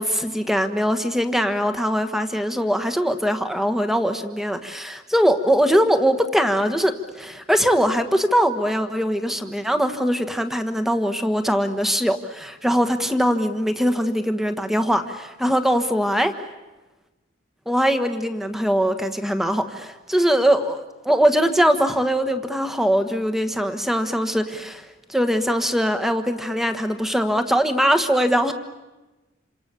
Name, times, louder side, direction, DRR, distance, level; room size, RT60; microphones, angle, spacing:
voice 1, 0.0-16.3 17.7-28.5, equal, ahead, 8 dB, 1.4 m, -21 dB
28.0 x 27.0 x 7.0 m, 1.1 s
head